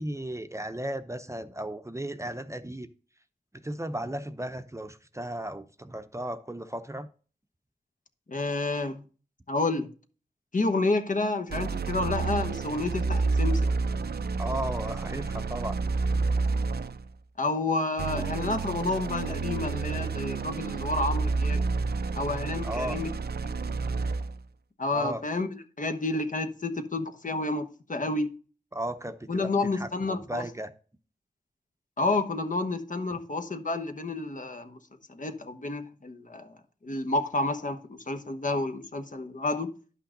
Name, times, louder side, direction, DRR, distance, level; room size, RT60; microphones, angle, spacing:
voice 1, 0.0-2.9 3.5-7.1 14.4-15.8 22.6-23.0 24.9-25.2 28.7-30.7, right 1 dB, 20° right, 0.8 m, -35 dB
voice 2, 8.3-9.0 9.5-9.9 10.5-13.7 17.4-21.6 22.1-23.1 24.8-28.3 29.3-30.4 32.0-34.8 35.1-36.6 36.8-39.7, left 2 dB, 55° left, 1.3 m, -30 dB
sound 1, 11.5-17.1 18.0-24.4, right 4 dB, 80° right, 0.6 m, -29 dB
11.0 x 5.7 x 3.9 m
cardioid pair, 50°, 16 cm